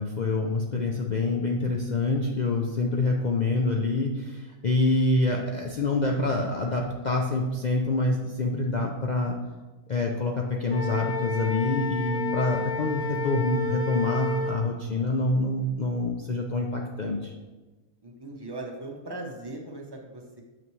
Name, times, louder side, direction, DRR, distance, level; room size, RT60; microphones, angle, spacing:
voice 1, 0.0-9.4 9.9-17.3, left 2 dB, 65° left, 0 dB, 0.4 m, -26 dB
Wind instrument woodwind instrument, 10.7-14.6, left 3 dB, 85° left, 1.3 m, -31 dB
voice 2, 18.0-20.4, right 2 dB, 20° right, 0 dB, 0.7 m, -39 dB
7.0 x 5.8 x 3.1 m, 1.2 s
omnidirectional pair, 1.5 m